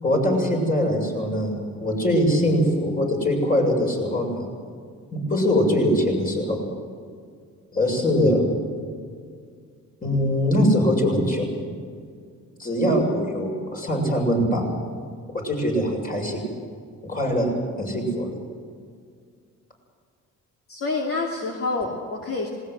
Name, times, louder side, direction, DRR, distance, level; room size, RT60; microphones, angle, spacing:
voice 1, 0.0-4.5 5.1-6.6 7.7-8.5 10.0-11.5 12.6-14.7 15.3-16.4 17.0-17.5 17.8-18.3, equal, 30° left, 0 dB, 7.2 m, -22 dB
voice 2, 20.7-22.5, left 3 dB, 50° left, 0 dB, 2.7 m, -27 dB
19.5 x 19.5 x 8.1 m, 2.1 s
cardioid pair, 90°, 30 cm